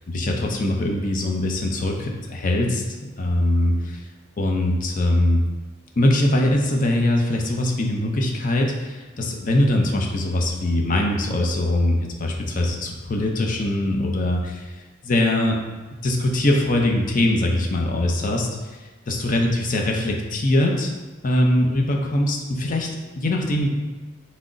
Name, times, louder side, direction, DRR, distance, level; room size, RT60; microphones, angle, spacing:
voice 1, 0.1-2.8 3.2-4.0 4.4-5.4 6.0-14.7 15.0-15.6 16.0-18.5 19.1-20.9 21.2-22.9 23.2-23.7, left 1 dB, 40° left, 1 dB, 0.6 m, -22 dB
6.0 x 2.1 x 3.8 m, 1.2 s
head